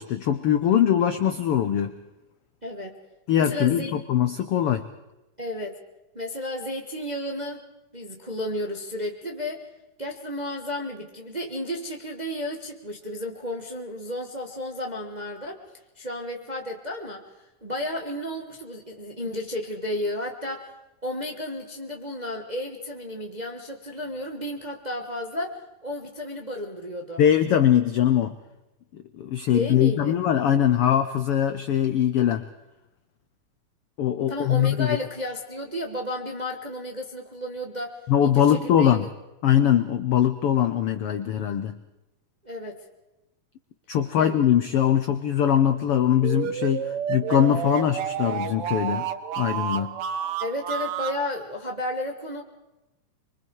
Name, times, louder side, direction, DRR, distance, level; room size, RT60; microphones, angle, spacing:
voice 1, 0.0-1.9 3.3-4.8 27.2-28.3 29.2-32.5 34.0-35.0 38.1-39.1 39.4-41.8 43.9-49.1 49.4-50.0, left 10 dB, 85° left, 10 dB, 1.3 m, -22 dB
voice 2, 2.6-3.0 3.4-3.9 5.4-5.8 6.1-7.6 7.9-9.6 10.0-15.7 16.0-17.2 17.6-20.7 21.0-27.2 29.5-30.2 34.3-39.1 42.4-42.8 44.2-44.4 50.4-52.4, left 1 dB, 35° right, 2 dB, 0.6 m, -33 dB
sound 1, 46.2-51.2, right 8 dB, 75° right, 1.3 m, -30 dB
25.5 x 23.5 x 4.8 m, 1.0 s
omnidirectional pair, 3.7 m